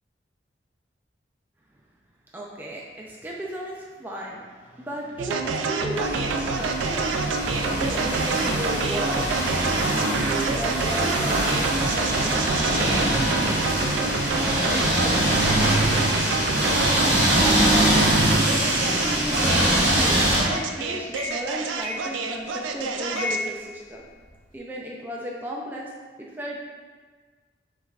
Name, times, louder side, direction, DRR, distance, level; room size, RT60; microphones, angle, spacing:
voice 1, 2.3-7.1 7.8-9.3 10.3-12.4 12.7-14.2 14.5-16.0 17.2-18.2 19.0-24.0 24.5-25.9 26.2-26.6, equal, 10° right, -3 dB, 0.3 m, -35 dB
sound 1, 5.2-23.5, right 4 dB, 90° right, 0.4 m, -28 dB
sound 2, 6.0-20.4, right 1 dB, 65° right, 1.0 m, -23 dB
sound 3, 18.9-19.0 19.6-20.0 20.5-20.8 21.1-21.5 21.8-22.6 23.2-24.4, left 2 dB, 30° left, 1.4 m, -34 dB
5.1 x 3.5 x 2.3 m, 1.5 s
head